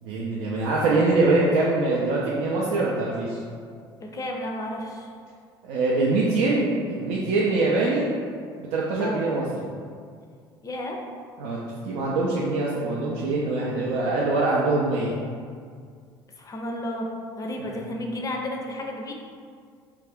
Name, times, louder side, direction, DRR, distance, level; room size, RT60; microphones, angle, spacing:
voice 1, 0.0-3.4 5.6-8.1 8.6-9.5 11.4-11.6 11.8-15.2 17.6-17.7, right 2 dB, 70° right, -5 dB, 0.4 m, -23 dB
voice 2, 4.0-5.1 9.0-9.2 10.6-11.0 16.4-17.1 17.4-19.1, left 1 dB, 30° left, 1 dB, 0.4 m, -32 dB
2.4 x 2.2 x 3.5 m, 2.1 s
hypercardioid pair, 65°, 12 cm